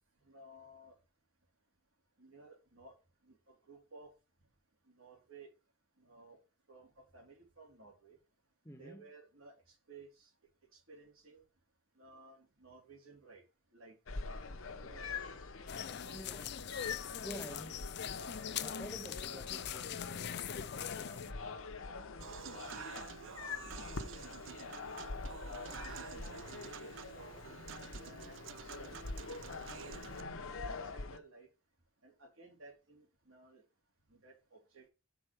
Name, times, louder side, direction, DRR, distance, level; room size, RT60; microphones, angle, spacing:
voice 1, 0.2-1.0 2.2-2.9 3.2-4.1 4.9-5.5 6.0-6.4 6.7-8.2 8.8-10.3 10.7-11.4 11.9-13.4 13.7-13.9 14.8-15.2 16.0-16.7 17.2-17.4 18.7-19.1 20.9-25.0 25.7-27.4 28.0-29.3 29.7-31.5 32.0-33.6 34.1-34.9, right 3 dB, 80° right, 3.0 m, -58 dB
voice 2, 8.6-9.1 16.1-16.5 17.2-17.9 18.6-20.2, equal, 15° left, 0.9 m, -49 dB
sound 1, 14.1-31.2, left 4 dB, 80° left, 0.9 m, -45 dB
sound 2, 15.7-21.3, left 9 dB, 55° left, 0.4 m, -42 dB
Human voice / Acoustic guitar / Piano, 22.2-30.2, right 7 dB, 65° right, 0.4 m, -49 dB
6.2 x 4.3 x 6.5 m
head